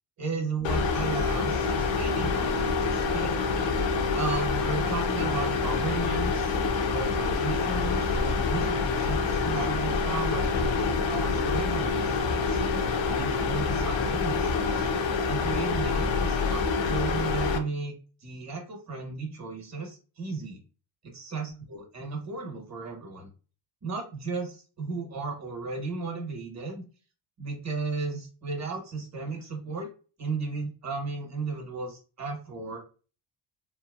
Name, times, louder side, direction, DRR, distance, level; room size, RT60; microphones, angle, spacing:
voice 1, 0.2-3.4 4.1-6.6 6.9-12.6 13.1-14.9 15.2-17.9 18.2-20.6 21.0-23.3 23.8-26.8 27.4-29.9 30.2-32.8, right 4 dB, 35° right, 2 dB, 1.2 m, -35 dB
sound 1, 0.6-17.6, left 4 dB, 65° left, 0.6 m, -27 dB
2.9 x 2.1 x 2.3 m, 0.35 s
cardioid pair, 100°, 49 cm